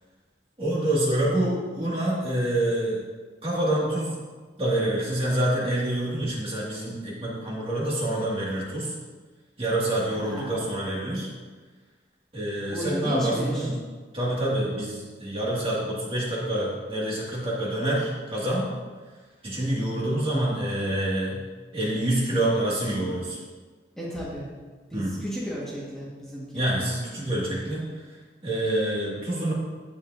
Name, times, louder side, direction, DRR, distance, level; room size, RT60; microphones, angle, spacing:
voice 1, 0.6-3.0 3.4-4.1 4.6-8.9 9.6-11.3 12.3-13.7 14.1-18.7 19.4-21.4 21.7-23.4 24.9-25.1 26.5-27.9 28.4-29.5, right 1 dB, 30° right, -5 dB, 2.0 m, -26 dB
voice 2, 10.1-10.7 12.7-13.7 24.0-24.6 24.9-26.7, equal, 5° left, -8 dB, 1.5 m, -34 dB
9.5 x 8.4 x 2.6 m, 1.4 s
head